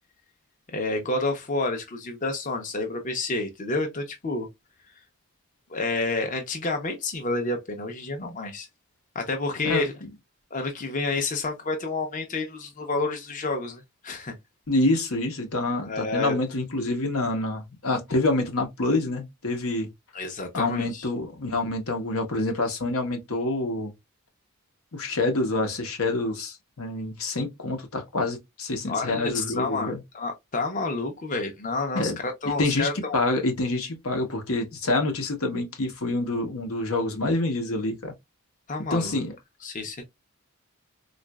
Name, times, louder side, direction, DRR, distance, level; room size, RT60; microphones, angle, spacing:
voice 1, 0.7-4.5 5.7-8.7 9.1-9.9 10.5-14.3 15.7-16.4 20.1-21.1 28.9-33.2 38.7-39.2 39.6-40.1, left 3 dB, 40° left, 0.7 m, -29 dB
voice 2, 9.6-10.1 14.7-19.9 20.5-23.9 24.9-30.0 31.9-32.2 32.6-38.1 38.9-39.4, left 2 dB, 85° left, 1.0 m, -27 dB
3.9 x 2.5 x 2.2 m
head